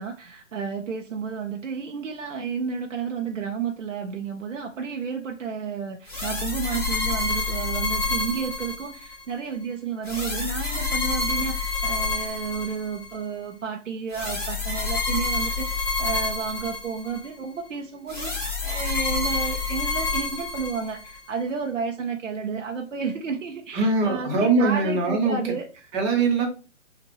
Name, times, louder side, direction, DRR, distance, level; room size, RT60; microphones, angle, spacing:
voice 1, 0.0-25.9, right 6 dB, 85° right, 0.8 m, -31 dB
sound 1, 6.1-9.2 10.0-13.1 14.1-17.3 18.1-21.2, left 4 dB, 5° left, 1.7 m, -28 dB
voice 2, 23.7-25.4 25.9-26.5, right 3 dB, 20° right, 1.1 m, -22 dB
5.7 x 2.5 x 3.0 m
hypercardioid pair, 145°, 37 cm